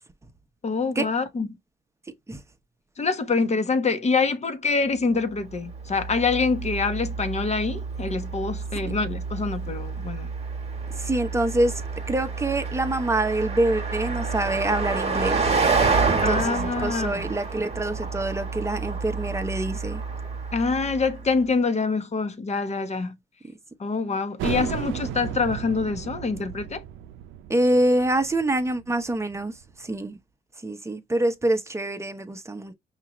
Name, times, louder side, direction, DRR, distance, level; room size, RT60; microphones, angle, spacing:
voice 1, 0.6-1.5 3.0-10.3 16.2-17.3 20.5-23.2 23.8-26.8, left 4 dB, 35° left, 1.0 m, -25 dB
Car passing by, 5.5-21.2, right 4 dB, 30° right, 1.3 m, -29 dB
voice 2, 11.0-11.8 12.1-15.4 16.1-20.0 27.5-29.5 29.8-30.1 30.6-32.7, right 1 dB, 15° right, 0.9 m, -25 dB
sound 1, 24.4-29.7, right 11 dB, 80° right, 0.5 m, -35 dB
5.6 x 2.5 x 3.0 m
cardioid pair, 90°, 20 cm